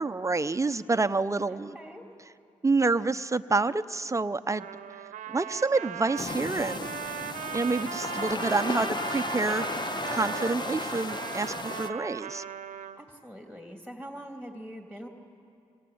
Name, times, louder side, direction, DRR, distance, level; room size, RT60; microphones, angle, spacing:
voice 1, 0.0-1.8 2.6-4.7 5.3-7.1 7.5-9.7 10.1-12.4, right 3 dB, 25° right, 11 dB, 0.8 m, -28 dB
voice 2, 1.5-2.0 8.1-9.0 13.0-15.1, equal, 5° left, 2 dB, 3.0 m, -43 dB
Trumpet, 4.6-13.0, right 9 dB, 75° right, 0.9 m, -38 dB
sound 1, 6.2-11.9, left 3 dB, 35° left, 1.0 m, -35 dB
26.0 x 25.5 x 8.7 m, 2.5 s
supercardioid pair, 55°, 13 cm